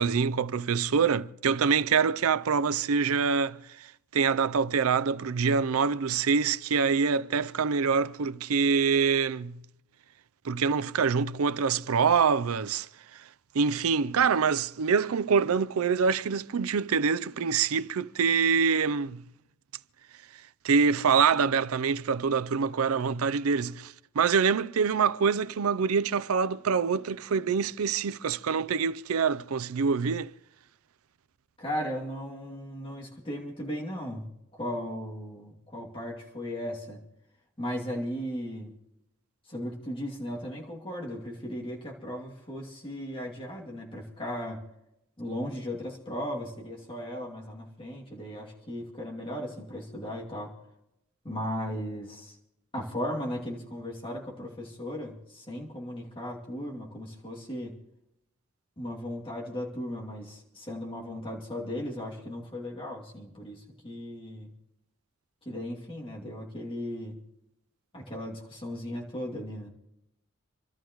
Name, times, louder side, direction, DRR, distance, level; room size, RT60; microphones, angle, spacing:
voice 1, 0.0-9.6 10.4-12.9 13.5-19.2 20.6-30.3, right 6 dB, 85° right, 0.5 m, -25 dB
voice 2, 31.6-37.0 37.6-38.7 39.5-44.6 45.2-50.5 51.2-52.4 52.7-57.8 58.8-64.5 65.4-67.2 67.9-69.7, equal, 25° left, 2.6 m, -36 dB
28.0 x 13.0 x 3.1 m
head